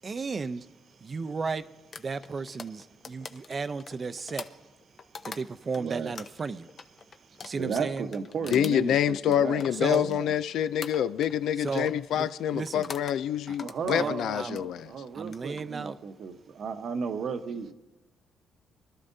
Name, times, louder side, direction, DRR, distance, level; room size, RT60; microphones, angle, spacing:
voice 1, 0.0-0.7 1.0-1.7 2.0-4.5 5.2-6.7 7.4-8.1 9.7-10.1 11.6-12.9 13.5-13.6 13.9-14.7 15.1-16.0, right 4 dB, 35° right, 0.6 m, -34 dB
sound 1, 1.9-5.8 6.1-10.4 10.8-11.4 11.7-12.0 12.7-13.2 13.5-14.7 15.2-15.6, left 5 dB, 50° left, 0.8 m, -43 dB
voice 2, 5.8-6.2 7.4-10.3 13.6-17.7, right 6 dB, 60° right, 1.0 m, -34 dB
voice 3, 8.5-14.9, left 10 dB, 75° left, 0.4 m, -26 dB
23.0 x 12.5 x 2.7 m
cardioid pair, 90°, 0 cm